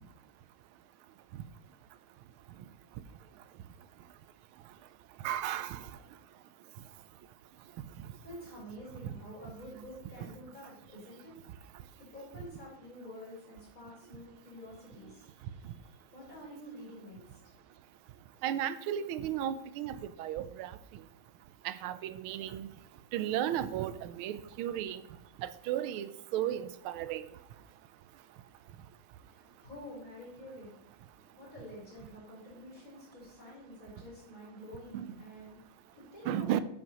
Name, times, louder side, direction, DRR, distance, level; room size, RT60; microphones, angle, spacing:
voice 1, 5.2-5.9 9.0-9.1 18.4-20.7 21.6-22.7 23.1-25.0 25.4-27.2 34.9-35.1 36.3-36.6, right 11 dB, 90° right, 14 dB, 1.5 m, -34 dB
voice 2, 8.2-17.6 29.2-36.6, equal, 40° left, -6 dB, 4.4 m, -49 dB
11.0 x 7.7 x 2.9 m, 0.78 s
omnidirectional pair, 2.2 m